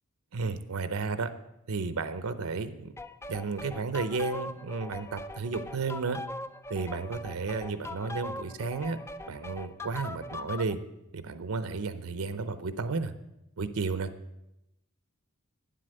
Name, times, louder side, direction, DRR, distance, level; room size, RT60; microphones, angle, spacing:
voice 1, 0.3-1.3 1.7-2.9 3.3-6.2 6.7-9.0 9.3-10.8 11.1-13.1 13.6-14.1, right 4 dB, 70° right, 11 dB, 0.6 m, -33 dB
sound 1, 3.0-10.7, left 2 dB, 10° left, 0.3 m, -41 dB
9.6 x 7.8 x 6.5 m, 0.89 s
head